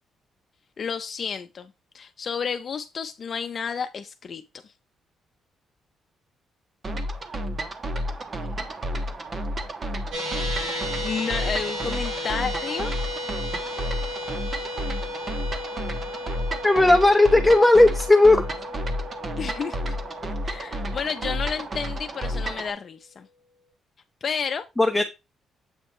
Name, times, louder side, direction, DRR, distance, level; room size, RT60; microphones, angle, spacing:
voice 1, 0.8-1.7 1.9-4.4 11.0-12.9 19.4-19.8 20.4-23.3 24.2-24.6, left 6 dB, 50° left, 0.7 m, -31 dB
sound 1, 6.8-22.7, equal, 35° right, 1.3 m, -31 dB
sound 2, 10.1-22.5, left 1 dB, 80° right, 4.4 m, -35 dB
voice 2, 16.6-18.4 24.8-25.0, left 2 dB, 5° left, 0.9 m, -16 dB
8.1 x 4.9 x 3.2 m
cardioid pair, 90°, 0 cm